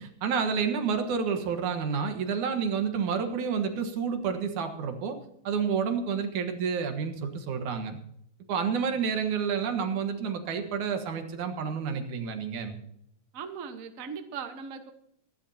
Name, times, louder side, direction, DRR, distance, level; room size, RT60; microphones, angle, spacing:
voice 1, 0.0-5.2 5.4-8.0 8.5-12.8, right 6 dB, 85° right, 6 dB, 2.9 m, -29 dB
voice 2, 13.3-14.9, right 6 dB, 55° right, 7 dB, 0.9 m, -39 dB
24.5 x 11.5 x 2.8 m, 0.75 s
omnidirectional pair, 3.3 m